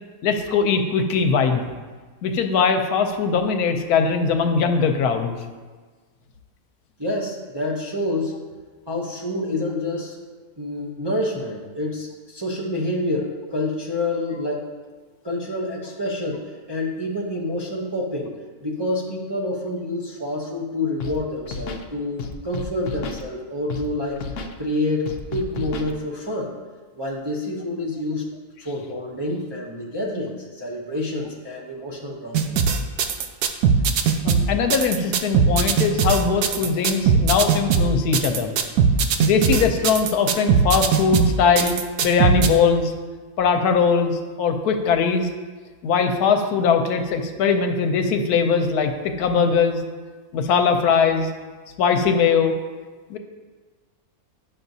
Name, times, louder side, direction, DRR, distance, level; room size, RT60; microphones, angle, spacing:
voice 1, 0.2-1.7 2.2-5.4 34.2-38.5 39.2-41.7 42.0-42.9 43.4-44.1 44.4-45.3 45.8-49.8 50.3-51.3 51.8-52.5 53.1-53.2, left 5 dB, 85° left, 6 dB, 1.2 m, -20 dB
voice 2, 7.0-8.4 8.9-10.2 10.6-14.7 15.2-18.3 18.6-24.2 24.6-26.5 27.0-28.3 28.6-32.6, left 1 dB, 25° right, -5 dB, 0.5 m, -28 dB
Scratching (performance technique), 21.0-21.2 21.4-21.8 22.2-23.2 23.7-23.9 24.1-24.5 25.1-25.9, left 4 dB, 65° left, 0.9 m, -32 dB
sound 1, 32.3-42.5, right 6 dB, 85° right, 1.1 m, -19 dB
10.5 x 5.9 x 2.7 m, 1.4 s
omnidirectional pair, 1.6 m